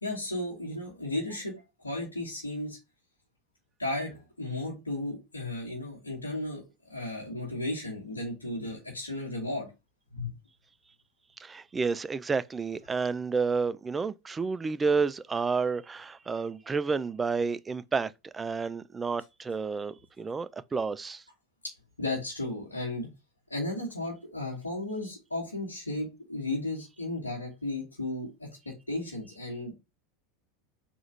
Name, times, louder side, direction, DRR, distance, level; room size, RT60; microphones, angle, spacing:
voice 1, 0.0-2.8 3.8-9.7 10.1-10.3 21.6-21.7 22.0-23.1 23.5-29.7, left 2 dB, 85° left, 1.5 m, -34 dB
voice 2, 11.4-21.2, right 4 dB, 20° right, 0.3 m, -30 dB
3.9 x 3.0 x 4.5 m
figure-of-eight pair, 85°, 0 cm